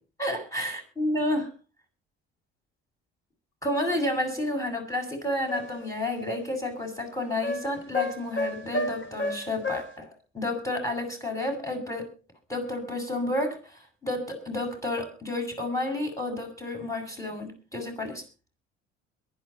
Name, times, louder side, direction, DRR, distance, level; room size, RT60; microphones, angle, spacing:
voice 1, 0.2-1.5 3.6-10.1 10.3-12.1 12.5-18.2, left 1 dB, 10° left, 4 dB, 7.3 m, -30 dB
sound 1, 5.5-5.9 7.4-10.0, left 1 dB, 35° left, 3.8 m, -32 dB
22.0 x 11.0 x 4.4 m, 0.36 s
hypercardioid pair, 55°, 33 cm